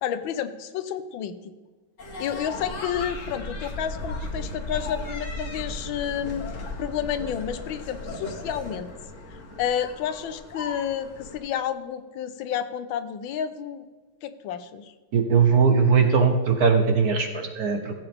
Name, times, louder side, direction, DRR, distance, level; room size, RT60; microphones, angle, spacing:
voice 1, 0.0-1.5 2.2-6.5 6.8-8.9 9.6-13.9 14.2-14.9, left 9 dB, 75° left, 11 dB, 1.3 m, -30 dB
sound 1, 2.0-11.4, left 2 dB, 40° left, 1.5 m, -36 dB
voice 2, 15.1-17.9, right 5 dB, 55° right, 5 dB, 1.3 m, -20 dB
15.5 x 8.0 x 3.5 m, 1.4 s
omnidirectional pair, 2.3 m